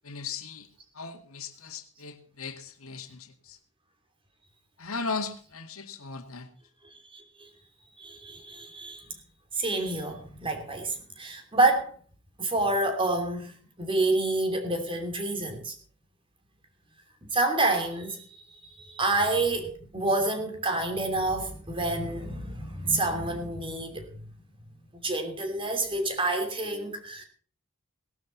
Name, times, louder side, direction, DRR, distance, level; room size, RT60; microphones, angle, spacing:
voice 1, 0.0-0.7 0.9-3.6 4.8-6.5, left 4 dB, 80° left, 6 dB, 2.0 m, -37 dB
voice 2, 6.9-7.5 8.0-9.0 9.6-11.9 12.4-15.7 17.3-24.1 25.0-27.3, right 2 dB, 25° right, 5 dB, 3.0 m, -28 dB
18.5 x 12.0 x 4.1 m, 0.44 s
head